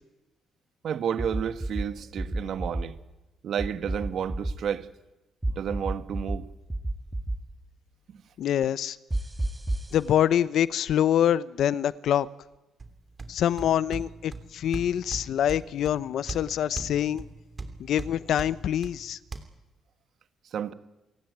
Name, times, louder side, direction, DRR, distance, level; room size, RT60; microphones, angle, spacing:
voice 1, 0.8-3.0 3.4-4.9 5.5-6.4 20.5-20.7, right 8 dB, 65° right, 1.5 m, -31 dB
sound 1, 1.2-1.8 2.2-2.8 3.6-4.5 5.4-6.4 6.7-7.4 9.1-9.9, right 1 dB, 15° right, 2.5 m, -29 dB
voice 2, 8.4-9.0 9.9-12.3 13.3-17.2 17.8-19.2, left 10 dB, 70° left, 0.8 m, -25 dB
sound 2, 12.8-19.4, right 3 dB, 30° right, 3.1 m, -41 dB
28.0 x 16.5 x 9.3 m
cardioid pair, 90°, 0 cm